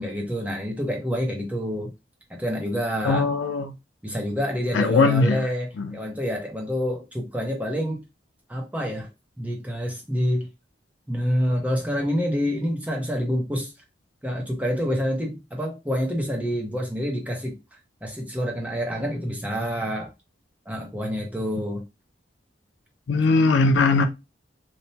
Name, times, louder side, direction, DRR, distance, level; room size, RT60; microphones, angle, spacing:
voice 1, 0.0-1.9 2.3-3.3 4.0-8.0 8.5-9.1 9.4-10.5 11.1-13.7 14.2-17.6 18.0-20.1 20.7-21.8, equal, 10° right, 0.6 m, -27 dB
voice 2, 3.0-3.7 4.7-5.4 5.8-6.0 23.1-24.1, left 3 dB, 85° left, 0.4 m, -20 dB
3.1 x 2.1 x 2.7 m
head